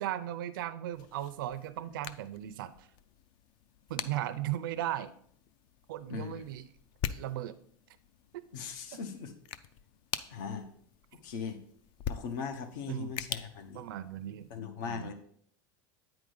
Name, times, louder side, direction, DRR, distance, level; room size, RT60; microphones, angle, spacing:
voice 1, 0.0-2.9 3.9-5.1 5.9-6.7 7.1-7.6 8.3-8.4 8.9-9.0 12.9-13.1 13.7-14.5 14.8-15.1, right 12 dB, 90° right, 11 dB, 0.5 m, -37 dB
sound 1, 0.9-14.6, left 10 dB, 45° left, 0.4 m, -44 dB
voice 2, 6.1-6.4 8.5-9.3 10.3-10.7 11.2-11.6 12.1-13.8 14.5-15.1, left 6 dB, 70° left, 8 dB, 1.0 m, -39 dB
8.9 x 4.8 x 3.9 m, 0.63 s
supercardioid pair, 145°, 11 cm